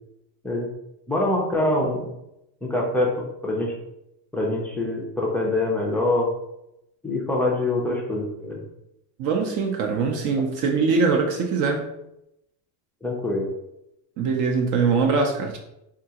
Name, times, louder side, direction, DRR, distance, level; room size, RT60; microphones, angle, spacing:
voice 1, 1.1-2.1 2.6-3.1 3.4-3.7 4.3-6.3 7.0-8.6 13.0-13.5, left 2 dB, 5° left, -2 dB, 0.4 m, -24 dB
voice 2, 9.2-11.9 14.2-15.6, right 4 dB, 45° right, 3 dB, 0.5 m, -22 dB
3.5 x 2.4 x 2.8 m, 0.84 s
cardioid pair, 140°, 44 cm